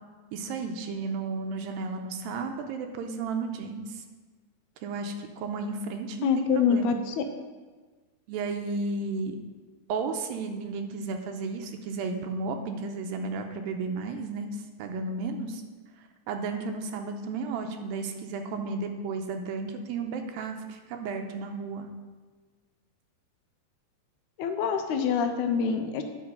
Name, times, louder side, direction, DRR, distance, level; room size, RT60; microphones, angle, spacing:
voice 1, 0.3-4.0 4.8-6.9 8.3-9.4 9.9-14.5 14.8-15.6 16.3-21.9, right 4 dB, 85° right, 5 dB, 2.4 m, -33 dB
voice 2, 6.2-7.2 24.4-26.0, left 6 dB, 85° left, 7 dB, 1.7 m, -25 dB
8.8 x 5.9 x 5.2 m, 1.4 s
omnidirectional pair, 4.1 m